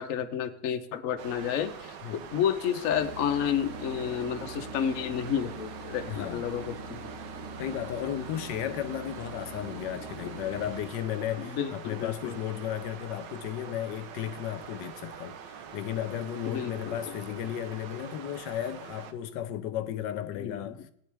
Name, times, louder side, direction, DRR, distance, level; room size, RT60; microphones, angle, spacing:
voice 1, 0.0-7.0 11.4-12.4 16.5-17.4 20.4-20.8, left 9 dB, 60° left, 0.9 m, -31 dB
sound 1, 1.2-19.1, right 7 dB, 85° right, 1.4 m, -45 dB
sound 2, 2.9-10.8, right 2 dB, 50° right, 1.5 m, -43 dB
voice 2, 6.1-6.4 7.6-20.9, left 11 dB, 85° left, 1.3 m, -34 dB
18.5 x 9.0 x 3.3 m
omnidirectional pair, 1.9 m